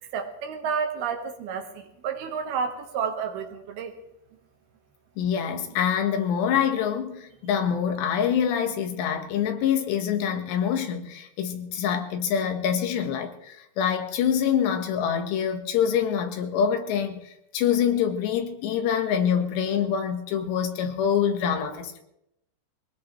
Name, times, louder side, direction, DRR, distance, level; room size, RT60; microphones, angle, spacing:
voice 1, 0.1-4.0, right 6 dB, 70° right, 3.2 m, -30 dB
voice 2, 5.2-17.2 17.5-22.0, left 8 dB, 90° left, 3.7 m, -25 dB
23.0 x 19.0 x 3.2 m
omnidirectional pair, 4.8 m